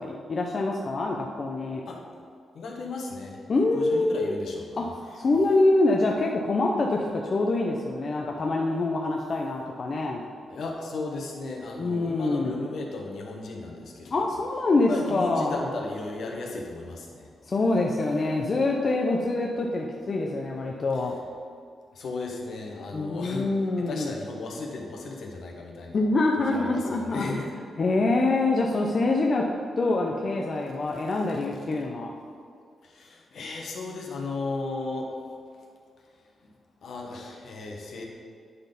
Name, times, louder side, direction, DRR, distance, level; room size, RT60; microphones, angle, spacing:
voice 1, 0.0-1.8 3.5-4.3 4.8-10.2 11.8-12.5 14.1-15.7 17.5-21.2 22.9-24.1 25.9-27.2 27.8-29.4 29.8-32.2, left 2 dB, 45° left, 0 dB, 0.7 m, -25 dB
voice 2, 2.5-3.4 3.7-4.9 10.5-14.1 14.9-17.3 21.9-23.5 23.8-26.0 26.5-27.5 32.8-35.1 36.8-38.0, left 3 dB, 70° left, 0 dB, 1.3 m, -35 dB
9.7 x 4.0 x 5.3 m, 2.2 s
cardioid pair, 90°, 0 cm